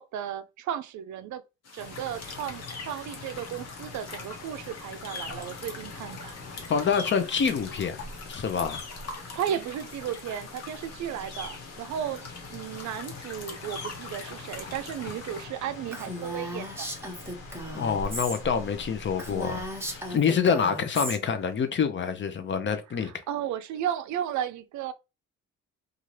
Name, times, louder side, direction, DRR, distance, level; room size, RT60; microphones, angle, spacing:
voice 1, 0.0-1.4 1.7-6.3 9.2-16.9 23.0-24.9, right 10 dB, 70° right, 0.4 m, -34 dB
sound 1, 1.7-15.4, left 4 dB, 55° left, 1.0 m, -42 dB
sound 2, 1.8-20.2, left 2 dB, 90° left, 1.2 m, -44 dB
voice 2, 6.7-8.0 8.3-8.8 17.7-23.1, left 6 dB, 40° left, 0.6 m, -27 dB
Female speech woman speaking, 15.9-18.4 18.7-18.8 19.2-21.2, equal, 10° right, 0.9 m, -36 dB
2.7 x 2.4 x 3.1 m
cardioid pair, 90°, 30 cm